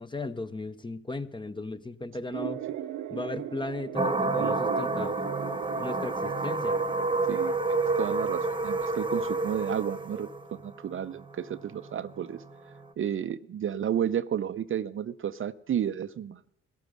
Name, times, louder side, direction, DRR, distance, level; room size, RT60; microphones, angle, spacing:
voice 1, 0.0-2.6 3.1-5.1 5.8-6.8, left 2 dB, 15° left, 12 dB, 0.7 m, -36 dB
sound 1, 2.3-7.3, right 12 dB, 80° right, 0.8 m, -38 dB
sound 2, 4.0-12.9, right 3 dB, 15° right, 1.1 m, -29 dB
voice 2, 7.3-12.4 13.0-16.5, right 9 dB, 45° right, 13 dB, 0.5 m, -32 dB
13.0 x 10.5 x 6.3 m, 0.78 s
cardioid pair, 90°, 30 cm